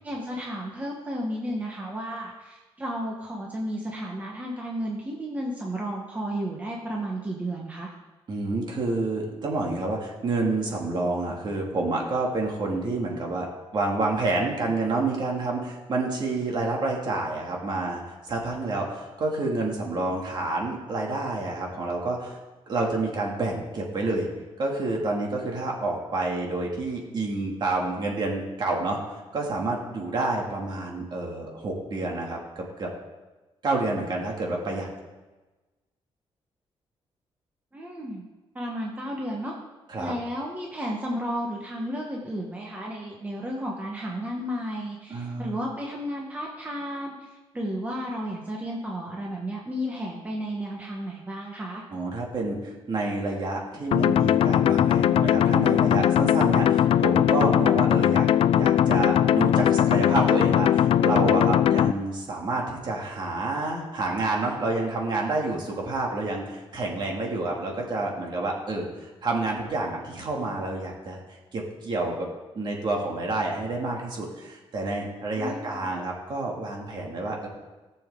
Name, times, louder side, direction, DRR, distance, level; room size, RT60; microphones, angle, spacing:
voice 1, 0.0-7.9 37.7-38.2 38.5-39.5 40.0-47.3 47.5-51.8 75.4-75.9, equal, 15° right, -2 dB, 1.3 m, -33 dB
voice 2, 8.3-13.5 13.7-22.4 22.7-24.3 24.6-32.9 33.6-34.9 39.9-40.1 45.1-45.6 51.9-58.3 58.5-71.2 71.5-72.3 72.6-77.5, right 2 dB, 45° right, -1 dB, 2.5 m, -28 dB
sound 1, 53.9-61.9, left 10 dB, 65° left, 0.3 m, -20 dB
18.0 x 7.1 x 3.8 m, 1.2 s
wide cardioid pair, 155°, 10 cm